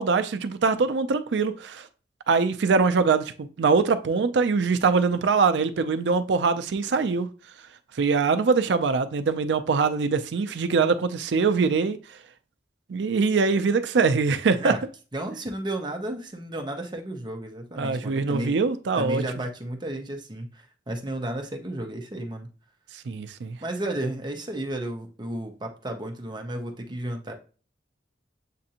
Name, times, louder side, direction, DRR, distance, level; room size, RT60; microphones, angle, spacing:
voice 1, 0.0-1.9 2.3-7.3 8.0-12.0 12.9-14.7 17.8-19.2 23.1-23.6, right 4 dB, 70° right, 0.4 m, -23 dB
voice 2, 15.1-18.6 19.0-22.5 23.6-27.3, right 1 dB, 25° right, 0.7 m, -33 dB
7.5 x 2.5 x 2.8 m
head